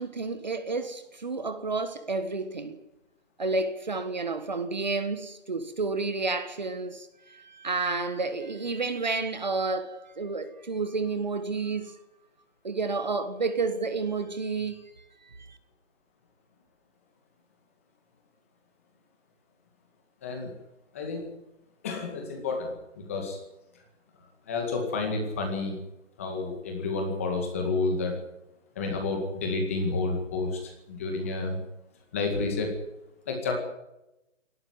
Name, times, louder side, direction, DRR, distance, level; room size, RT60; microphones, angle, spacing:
voice 1, 0.0-2.8 3.4-12.0 12.6-14.8 15.2-15.6, right 3 dB, 35° right, 1.6 m, -30 dB
voice 2, 20.9-21.3 21.8-23.4 24.5-25.8 26.2-28.1 28.8-31.6 32.1-32.7 33.3-33.6, left 3 dB, 10° left, 2.0 m, -30 dB
18.5 x 14.5 x 9.6 m
hypercardioid pair, 180°, 37 cm